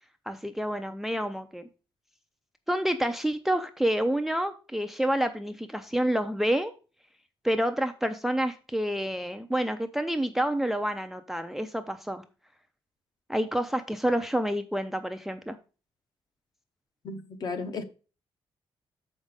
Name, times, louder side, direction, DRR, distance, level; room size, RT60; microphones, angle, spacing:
voice 1, 0.3-1.6 2.7-6.7 7.4-12.2 13.3-15.6, right 1 dB, 5° right, 9 dB, 0.4 m, -28 dB
voice 2, 17.0-17.8, left 4 dB, 45° left, 8 dB, 1.1 m, -34 dB
7.1 x 5.3 x 5.0 m, 0.34 s
wide cardioid pair, 175°, 9 cm